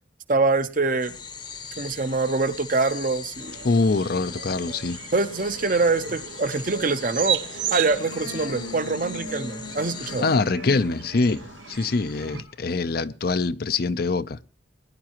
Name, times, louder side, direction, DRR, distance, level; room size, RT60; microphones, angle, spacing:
voice 1, 0.3-1.2 1.8-3.6 5.1-10.2, right 3 dB, 45° right, 0.8 m, -24 dB
sound 1, 1.0-10.2, left 6 dB, 25° left, 0.8 m, -40 dB
sound 2, 3.4-12.4, right 8 dB, 75° right, 0.8 m, -35 dB
voice 2, 3.6-5.0 10.0-14.4, left 3 dB, 50° left, 0.5 m, -24 dB
sound 3, 7.4-12.6, left 1 dB, 85° left, 2.3 m, -39 dB
21.0 x 10.5 x 3.0 m
head